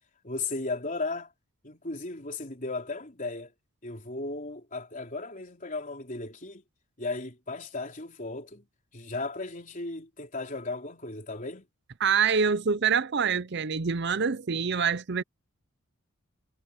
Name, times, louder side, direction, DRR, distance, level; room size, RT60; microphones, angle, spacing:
voice 1, 0.2-1.3 1.6-3.5 3.8-6.6 7.0-8.6 8.9-11.7, left 3 dB, 40° left, 3.9 m, -35 dB
voice 2, 12.0-15.2, right 6 dB, 55° right, 0.6 m, -25 dB
head